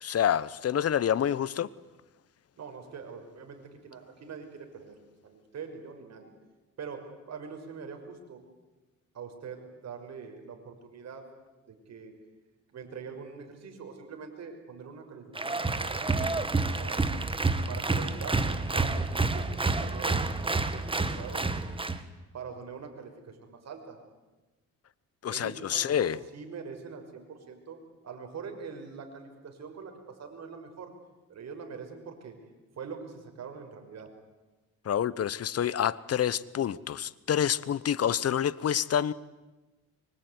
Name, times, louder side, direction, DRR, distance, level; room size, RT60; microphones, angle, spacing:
voice 1, 0.0-1.7 25.2-26.2 34.8-39.1, left 9 dB, 55° left, 20 dB, 1.0 m, -27 dB
voice 2, 2.6-5.0 5.2-6.3 6.8-8.5 9.1-11.3 11.7-12.1 12.7-16.2 16.7-17.0 17.7-18.4 18.7-21.8 22.3-24.0 25.3-27.8 28.0-30.9 31.3-32.3 32.8-34.1, right 5 dB, 60° right, 5 dB, 6.1 m, -43 dB
Applause, 15.3-22.0, right 3 dB, 15° right, 1.9 m, -29 dB
24.5 x 24.5 x 9.7 m, 1.1 s
cardioid pair, 90°, 30 cm